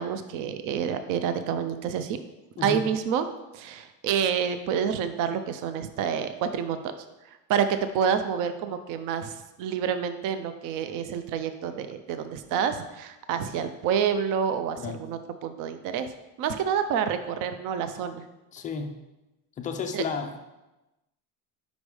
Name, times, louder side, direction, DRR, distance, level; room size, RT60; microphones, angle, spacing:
voice 1, 0.0-2.2 2.6-3.3 3.5-6.9 7.3-16.1 16.4-18.2 19.9-20.0, right 7 dB, 45° right, 10 dB, 0.5 m, -28 dB
voice 2, 18.5-19.0 19.6-20.4, left 5 dB, 20° left, 5 dB, 0.3 m, -32 dB
5.3 x 5.1 x 4.8 m, 1.0 s
cardioid pair, 145°, 45 cm